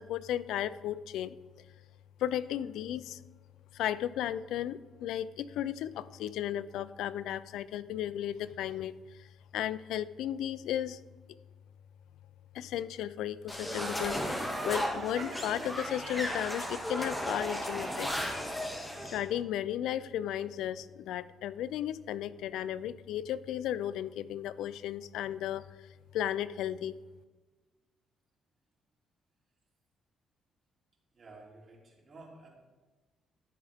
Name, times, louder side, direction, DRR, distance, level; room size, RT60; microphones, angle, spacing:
voice 1, 0.0-1.4 2.2-3.2 3.7-8.9 9.2-9.3 9.5-11.0 12.5-18.3 19.1-25.9 26.1-26.9, left 11 dB, 85° left, 17 dB, 0.3 m, -35 dB
sound 1, 13.5-19.2, equal, 10° left, 2.1 m, -35 dB
Laughter, 14.4-16.7, right 5 dB, 85° right, 1.9 m, -47 dB
voice 2, 31.1-32.5, right 2 dB, 40° right, -2 dB, 3.0 m, -52 dB
14.0 x 7.1 x 3.5 m, 1.3 s
cardioid pair, 90°, 0 cm